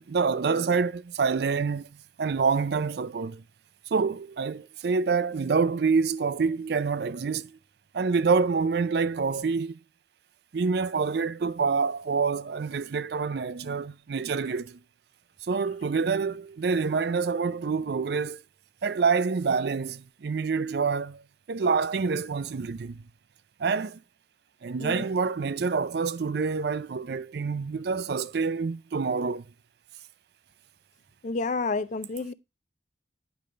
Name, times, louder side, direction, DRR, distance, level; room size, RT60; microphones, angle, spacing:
voice 1, 0.0-1.9 2.2-3.4 3.9-7.6 7.9-9.8 10.5-14.8 15.4-18.4 18.8-21.2 21.5-23.0 23.6-24.0 24.6-29.5, right 5 dB, 60° right, 0.4 m, -27 dB
voice 2, 31.2-32.3, left 3 dB, 40° left, 0.4 m, -30 dB
10.0 x 5.3 x 3.2 m
head